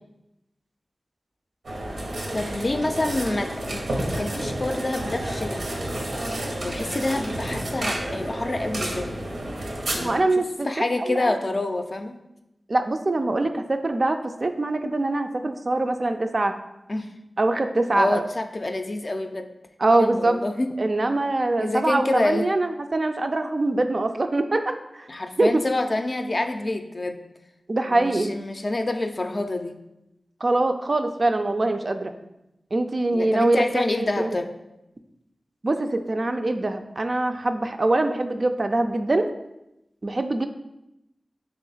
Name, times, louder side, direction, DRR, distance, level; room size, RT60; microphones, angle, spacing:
sound 1, 1.6-10.1, right 1 dB, 85° right, 0.7 m, -30 dB
voice 1, 2.3-3.8 4.1-5.8 6.6-9.1 9.9-10.3 10.7-12.2 16.9-17.1 17.9-19.5 20.0-20.7 21.6-22.4 25.1-27.2 27.9-29.8 33.1-34.5, left 2 dB, 50° left, 6 dB, 0.4 m, -27 dB
voice 2, 10.0-10.7 11.1-11.3 12.7-16.5 17.4-18.2 19.8-20.4 20.8-25.1 25.4-25.5 27.7-28.3 30.4-32.1 32.7-34.3 35.6-39.3 40.0-40.5, right 2 dB, 55° right, 7 dB, 0.3 m, -23 dB
3.3 x 2.9 x 3.9 m, 0.90 s
cardioid pair, 45°, 0 cm